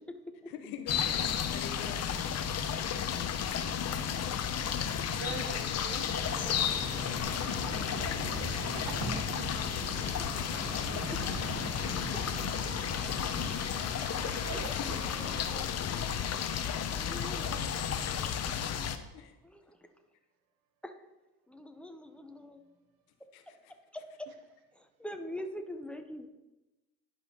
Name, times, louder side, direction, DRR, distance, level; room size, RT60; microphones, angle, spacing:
voice 1, 0.5-2.0 14.7-14.9 15.1-15.2 19.1-19.3 23.3-23.7, left 8 dB, 80° left, 7 dB, 0.9 m, -45 dB
sound 1, 0.9-19.0, left 8 dB, 45° left, 0.7 m, -33 dB
voice 2, 4.5-7.1 8.7-9.5 14.4-14.7 15.3-15.4 16.5-16.8, right 6 dB, 70° right, 7 dB, 1.0 m, -45 dB
sound 2, 6.3-15.5, right 3 dB, 85° right, 1.5 m, -42 dB
voice 3, 9.8-11.2 14.2-15.7 16.5-17.7 18.1-18.4 19.4-19.9 20.8-21.1 21.5-22.6 23.9-24.3 24.7-26.3, left 1 dB, 5° left, 6 dB, 0.8 m, -47 dB
11.0 x 5.2 x 2.9 m, 1.0 s
supercardioid pair, 70°, 37 cm